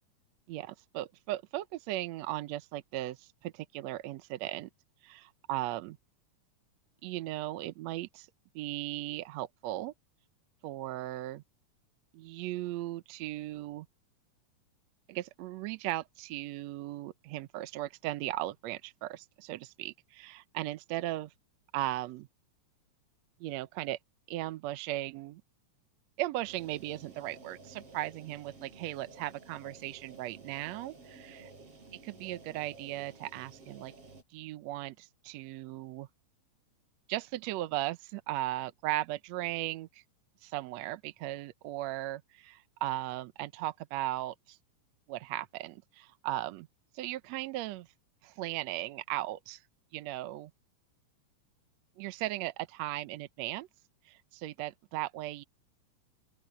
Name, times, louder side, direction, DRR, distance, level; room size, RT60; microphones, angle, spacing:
voice 1, 0.5-4.7 5.0-6.0 7.0-8.3 8.6-9.9 10.6-11.4 12.1-13.9 15.1-21.3 21.7-22.3 23.4-24.0 24.3-25.4 26.2-31.5 32.0-33.9 34.3-36.1 37.1-40.0 40.4-44.6 45.1-46.7 46.9-47.9 48.2-49.6 49.9-50.5 52.0-53.7 54.1-55.4, right 16 dB, 75° right, 1.7 m, -37 dB
sound 1, 26.4-34.2, right 3 dB, 45° right, 6.1 m, -53 dB
open air
omnidirectional pair, 3.6 m